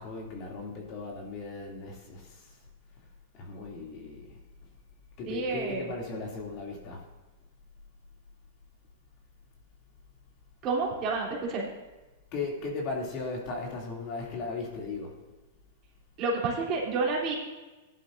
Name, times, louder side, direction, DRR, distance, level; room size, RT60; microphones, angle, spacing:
voice 1, 0.0-2.6 3.3-4.4 5.2-7.0 12.3-15.2, left 3 dB, 40° left, -1 dB, 2.6 m, -37 dB
voice 2, 5.3-5.8 10.6-11.7 16.2-17.4, right 3 dB, 35° right, -3 dB, 3.1 m, -29 dB
17.0 x 11.0 x 2.6 m, 1.1 s
hypercardioid pair, 140°, 0 cm